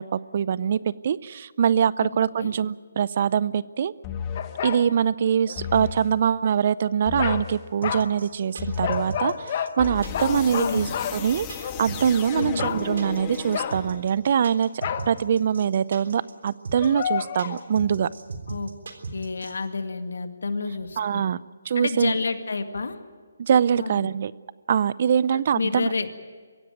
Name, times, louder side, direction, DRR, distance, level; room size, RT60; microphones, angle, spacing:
voice 1, 0.0-3.9 4.6-14.7 15.1-18.1 21.0-21.4 21.7-22.1 23.4-24.3 24.7-25.9, right 8 dB, 45° right, 19 dB, 0.6 m, -23 dB
voice 2, 2.0-2.5 10.2-10.9 12.3-12.7 18.5-18.7 19.1-21.2 21.8-23.0 23.8-24.1 25.3-26.1, left 4 dB, 70° left, 8 dB, 2.0 m, -30 dB
sound 1, 4.0-4.6 5.6-6.1 7.1-7.6 8.6-9.1 9.8-14.2, left 8 dB, 20° left, 1.4 m, -34 dB
sound 2, 4.4-4.9 5.5-5.6 7.2-7.5 7.8-8.1 8.8-9.7 10.1-11.8 12.6-12.9 13.5-14.0 14.8-15.1 16.7-17.6, left 8 dB, 40° left, 1.4 m, -30 dB
sound 3, 7.8-19.5, right 4 dB, 65° right, 3.6 m, -36 dB
24.0 x 16.0 x 9.1 m, 1.5 s
hypercardioid pair, 155°, 0 cm